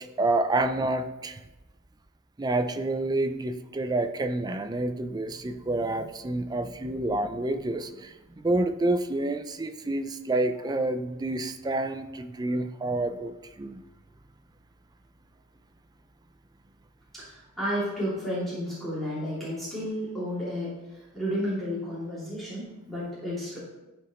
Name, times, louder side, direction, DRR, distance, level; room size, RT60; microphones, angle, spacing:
voice 1, 0.2-1.4 2.4-13.8, right 2 dB, 20° right, 8 dB, 0.4 m, -28 dB
voice 2, 17.1-23.6, equal, ahead, -11 dB, 2.8 m, -32 dB
13.0 x 4.8 x 3.1 m, 1.0 s
head